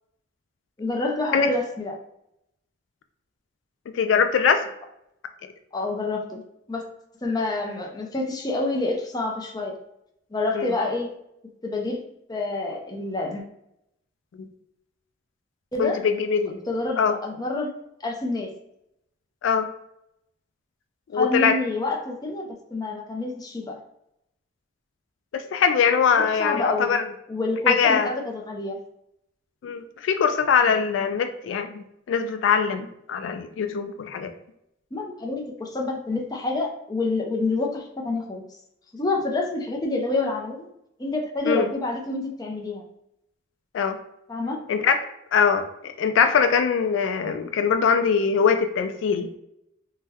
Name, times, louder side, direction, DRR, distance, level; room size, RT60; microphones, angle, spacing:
voice 1, 0.8-2.0 5.7-6.4 6.7-6.8 7.2-9.7 10.3-11.1 11.6-12.0 12.3-13.4 15.7-16.0 16.7-17.7 18.0-18.5 21.1-23.8 26.4-27.0 27.3-28.8 34.9-38.4 38.9-40.7 41.0-42.9 44.3-44.6, left 2 dB, 20° left, 0 dB, 0.5 m, -27 dB
voice 2, 3.9-4.6 10.5-10.7 14.3-14.5 15.8-16.6 17.0-17.2 19.4-19.7 21.1-21.6 25.3-27.1 27.7-28.1 29.6-34.3 41.5-41.7 43.7-44.0 44.7-45.0 45.3-49.3, left 6 dB, 80° left, 8 dB, 0.3 m, -22 dB
3.7 x 2.1 x 2.8 m, 0.80 s
head